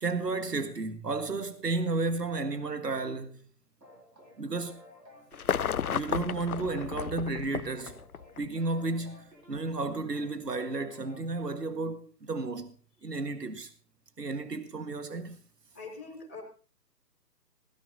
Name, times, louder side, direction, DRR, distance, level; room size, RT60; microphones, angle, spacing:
voice 1, 0.0-3.4 4.4-4.8 5.9-8.0 8.4-12.7 13.0-13.7 14.2-15.4, right 3 dB, 75° right, 1.6 m, -32 dB
sound 1, 3.8-11.8, left 1 dB, 90° right, 4.6 m, -55 dB
sound 2, 5.3-8.5 9.5-9.6, left 8 dB, 65° left, 0.5 m, -32 dB
voice 2, 15.7-16.4, left 4 dB, 10° left, 0.8 m, -43 dB
17.0 x 15.0 x 2.7 m
figure-of-eight pair, 150°, 49 cm